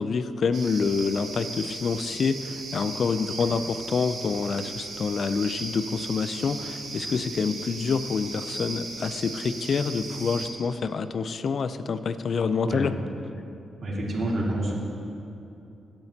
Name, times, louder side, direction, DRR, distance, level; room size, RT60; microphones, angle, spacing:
voice 1, 0.0-12.9, left 5 dB, 55° left, 12 dB, 0.4 m, -27 dB
sound 1, 0.5-10.5, right 3 dB, 85° right, 1.6 m, -37 dB
voice 2, 13.8-14.7, right 1 dB, 55° right, -3 dB, 2.2 m, -28 dB
16.5 x 8.8 x 2.9 m, 2.7 s
cardioid pair, 80°, 0 cm